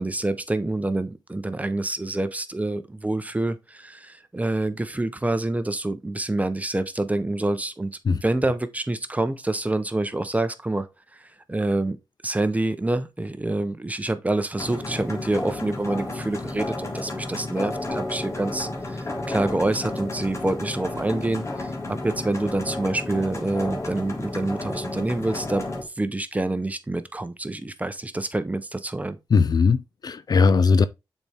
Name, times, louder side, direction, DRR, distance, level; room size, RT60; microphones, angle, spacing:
voice 1, 0.0-12.0 12.2-29.2, right 2 dB, 20° right, 0.9 m, -27 dB
sound 1, 14.6-25.8, left 2 dB, 35° left, 2.1 m, -32 dB
voice 2, 29.3-30.8, left 5 dB, 55° left, 0.4 m, -19 dB
6.8 x 4.3 x 3.5 m
cardioid pair, 65°, 8 cm